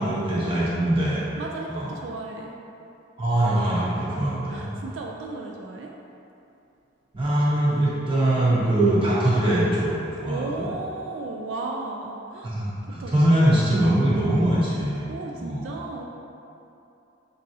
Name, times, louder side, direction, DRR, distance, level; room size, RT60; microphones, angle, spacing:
voice 1, 0.0-1.2 1.7-1.9 3.2-4.7 7.1-10.7 12.4-15.6, right 1 dB, 30° right, -9 dB, 0.9 m, -22 dB
voice 2, 1.4-2.5 4.5-5.9 8.8-9.0 10.3-12.6 12.9-13.4 15.1-16.0, right 3 dB, 80° right, 0 dB, 0.3 m, -35 dB
5.2 x 2.7 x 2.6 m, 2.8 s
head